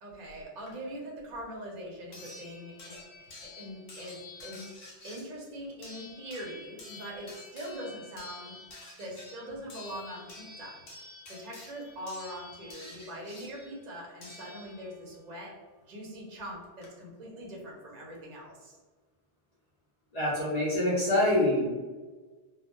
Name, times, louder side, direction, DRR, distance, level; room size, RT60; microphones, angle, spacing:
voice 1, 0.0-3.0 3.4-4.7 5.0-8.5 9.0-10.8 11.3-15.6 15.9-18.8, equal, 50° right, -3 dB, 0.6 m, -42 dB
sound 1, 0.7-0.8 2.1-15.1 16.4-16.5 16.8-16.9, left 3 dB, 75° left, 0.9 m, -49 dB
voice 2, 20.1-21.7, left 1 dB, 45° left, -8 dB, 0.7 m, -25 dB
2.1 x 2.1 x 2.9 m, 1.3 s
omnidirectional pair, 1.1 m